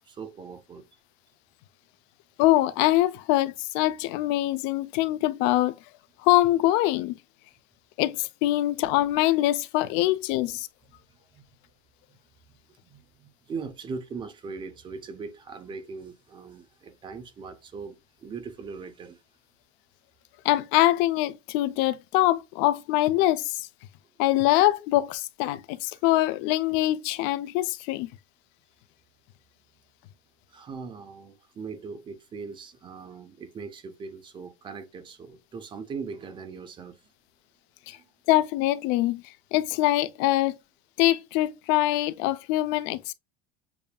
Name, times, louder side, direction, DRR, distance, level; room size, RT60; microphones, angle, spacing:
voice 1, 0.0-0.9 10.0-10.1 10.9-11.4 12.1-12.2 12.8-19.2 25.9-26.0 30.5-37.0 37.9-38.0, right 5 dB, 25° right, 0.6 m, -40 dB
voice 2, 2.4-5.8 6.2-7.1 8.0-10.7 20.4-23.7 24.2-28.1 37.9-38.0 38.3-39.2 39.5-40.6 41.0-43.1, left 16 dB, 60° left, 0.4 m, -23 dB
6.8 x 2.6 x 2.2 m
cardioid pair, 155°, 20 cm